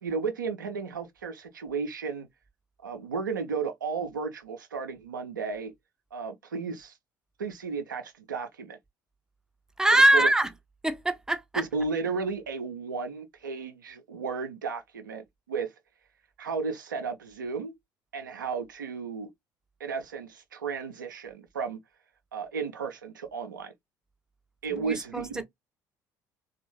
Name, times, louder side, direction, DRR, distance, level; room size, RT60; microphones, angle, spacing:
voice 1, 0.0-2.3 2.8-5.7 6.1-6.9 7.4-8.8 9.9-10.3 11.6-15.7 16.4-17.7 18.1-19.3 19.8-21.8 22.3-23.7 24.6-25.4, right 5 dB, 80° right, 0.5 m, -33 dB
voice 2, 9.8-10.5 10.8-11.7 24.7-25.4, right 1 dB, 5° right, 0.6 m, -23 dB
3.3 x 2.4 x 3.0 m
figure-of-eight pair, 55°, 10 cm